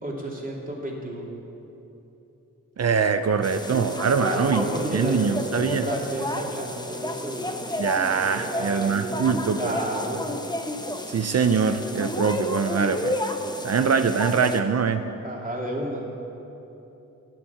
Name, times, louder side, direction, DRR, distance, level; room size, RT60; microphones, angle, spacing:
voice 1, 0.0-1.3 4.2-7.4 8.1-9.2 9.6-10.2 15.2-16.0, right 1 dB, 25° right, -3 dB, 3.0 m, -31 dB
voice 2, 2.8-4.6 4.9-5.9 7.8-9.7 11.1-13.1 13.6-15.1, right 6 dB, 50° right, 9 dB, 0.7 m, -23 dB
sound 1, 3.4-14.6, left 1 dB, 10° left, 1.0 m, -31 dB
12.0 x 8.7 x 7.3 m, 3.0 s
cardioid pair, 55°, 34 cm